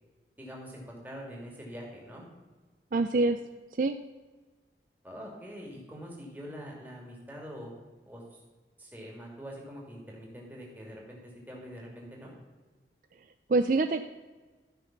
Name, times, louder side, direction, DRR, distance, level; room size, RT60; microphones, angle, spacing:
voice 1, 0.4-2.2 5.0-7.7 8.1-8.4 8.8-12.3, equal, 10° right, -2 dB, 2.4 m, -44 dB
voice 2, 2.9-3.4 3.8-4.0 13.5-14.0, right 3 dB, 45° right, 8 dB, 0.4 m, -25 dB
13.0 x 5.8 x 5.9 m, 1.3 s
head